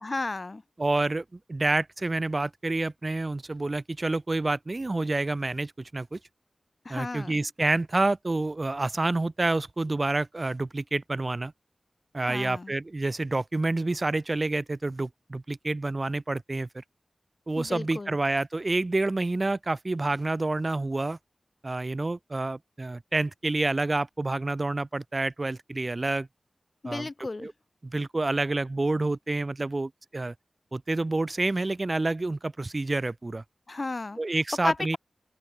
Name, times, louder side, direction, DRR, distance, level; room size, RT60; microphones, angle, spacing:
voice 1, 0.0-0.6 6.8-7.4 12.2-12.7 17.6-18.1 26.8-27.5 33.7-34.2 34.6-35.0, left 3 dB, 45° left, 0.7 m, -33 dB
voice 2, 0.8-6.2 6.9-11.5 12.1-16.8 17.5-21.2 21.6-26.3 26.9-27.1 27.4-27.5 27.8-30.3 30.7-33.4 34.2-35.0, right 2 dB, 40° right, 0.4 m, -28 dB
open air
cardioid pair, 50°, 0 cm